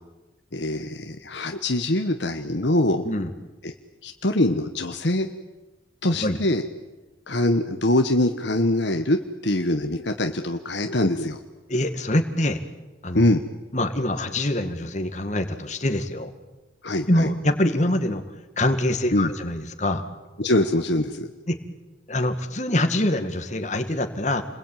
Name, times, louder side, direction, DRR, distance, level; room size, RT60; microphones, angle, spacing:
voice 1, 0.5-3.1 3.6-3.7 4.0-5.3 6.0-6.6 7.3-11.4 13.1-13.4 16.8-17.3 19.1-19.3 20.4-21.3, left 1 dB, 65° left, 6 dB, 1.4 m, -23 dB
voice 2, 11.7-12.6 13.0-13.2 13.7-16.3 17.1-18.2 18.6-20.0 21.5-21.6 22.1-24.4, left 1 dB, 35° left, 7 dB, 2.2 m, -24 dB
30.0 x 21.5 x 9.3 m, 1.1 s
head